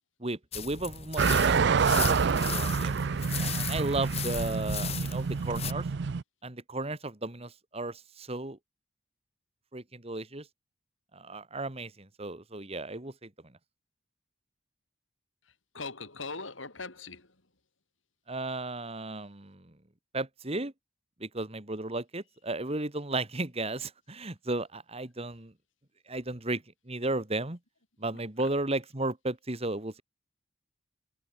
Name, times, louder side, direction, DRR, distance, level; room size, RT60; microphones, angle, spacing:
voice 1, 0.2-2.9 3.4-5.9 6.4-8.6 9.7-10.5 11.1-13.3 18.3-19.7 20.1-20.7 21.2-25.5 26.1-27.6 28.0-30.0, right 2 dB, 30° right, 2.0 m, -34 dB
sound 1, 0.5-5.7, left 8 dB, 30° left, 1.0 m, -37 dB
sound 2, 1.2-6.2, right 5 dB, 60° right, 0.5 m, -27 dB
voice 2, 15.7-17.3, left 4 dB, 75° left, 4.8 m, -40 dB
head